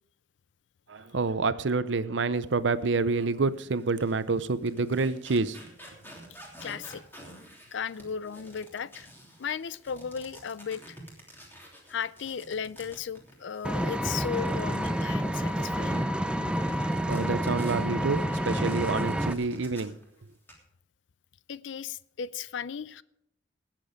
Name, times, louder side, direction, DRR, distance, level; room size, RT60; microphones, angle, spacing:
voice 1, 0.9-5.6 17.1-19.9, right 3 dB, 70° right, 0.7 m, -28 dB
sound 1, 3.1-3.2 3.8-16.0 16.5-20.0 20.3-20.5, equal, 10° left, 3.2 m, -49 dB
voice 2, 6.6-7.0 7.7-9.1 9.4-11.0 11.9-16.0 21.5-23.0, left 7 dB, 70° left, 0.5 m, -36 dB
Vehicle, 13.6-19.3, right 1 dB, 5° right, 0.6 m, -29 dB
19.0 x 7.6 x 5.1 m
head